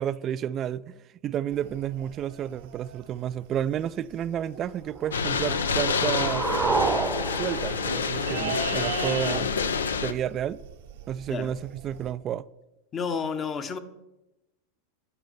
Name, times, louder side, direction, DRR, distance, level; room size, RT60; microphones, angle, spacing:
voice 1, 0.0-6.5 7.4-9.5 10.0-10.6 11.1-12.5, right 10 dB, 35° right, 0.3 m, -31 dB
sound 1, 1.5-12.1, right 10 dB, 70° right, 0.9 m, -41 dB
sound 2, 5.1-10.1, left 5 dB, 90° left, 0.6 m, -27 dB
sound 3, 5.1-9.1, right 5 dB, 20° right, 0.8 m, -30 dB
voice 2, 12.9-13.8, left 6 dB, 30° left, 0.8 m, -30 dB
9.0 x 5.2 x 6.8 m
hypercardioid pair, 100°, 0 cm